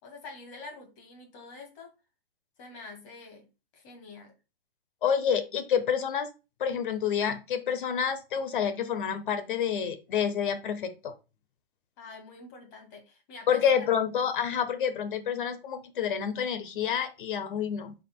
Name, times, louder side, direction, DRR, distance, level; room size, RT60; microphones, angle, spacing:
voice 1, 0.0-1.9 2.6-3.5 3.7-4.3 12.0-13.9, left 3 dB, 30° left, 2.0 m, -46 dB
voice 2, 5.0-6.3 6.6-11.1 13.5-17.9, left 8 dB, 55° left, 1.1 m, -28 dB
11.0 x 4.1 x 2.2 m
hypercardioid pair, 145°, 31 cm